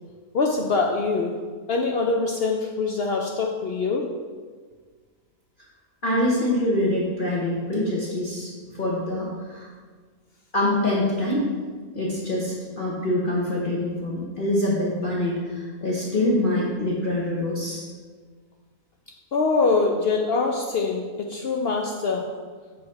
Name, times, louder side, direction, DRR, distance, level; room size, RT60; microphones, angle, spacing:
voice 1, 0.3-1.4 1.7-4.1 19.3-22.3, left 3 dB, 80° left, 2 dB, 0.5 m, -24 dB
voice 2, 6.0-9.7 10.5-11.4 11.9-17.8, left 1 dB, 40° left, -5 dB, 1.0 m, -25 dB
6.9 x 3.3 x 5.2 m, 1.5 s
omnidirectional pair, 1.6 m